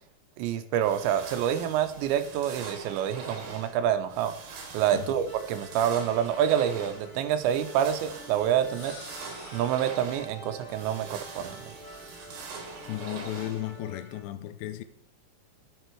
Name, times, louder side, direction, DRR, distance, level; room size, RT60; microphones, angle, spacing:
voice 1, 0.4-4.4 4.7-8.9 9.5-11.8, right 10 dB, 90° right, 3.1 m, -27 dB
sound 1, 0.8-13.9, right 4 dB, 75° right, 3.8 m, -43 dB
sound 2, 5.2-14.2, right 1 dB, 15° left, 1.8 m, -48 dB
sound 3, 6.0-7.3 8.5-10.2 11.5-12.9, left 2 dB, 40° left, 2.9 m, -51 dB
voice 2, 12.9-14.8, left 14 dB, 85° left, 2.7 m, -35 dB
11.5 x 7.5 x 4.7 m
omnidirectional pair, 5.0 m